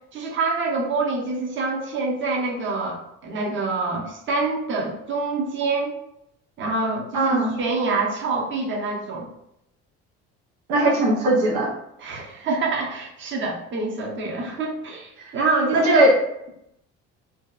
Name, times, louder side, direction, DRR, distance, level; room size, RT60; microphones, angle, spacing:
voice 1, 0.1-6.0 6.6-9.3 12.0-16.1, right 3 dB, 40° right, 0 dB, 0.7 m, -26 dB
voice 2, 7.1-7.5 10.7-11.7 15.7-16.1, right 1 dB, 85° right, -2 dB, 0.7 m, -18 dB
2.7 x 2.2 x 2.3 m, 0.79 s
supercardioid pair, 70°, 32 cm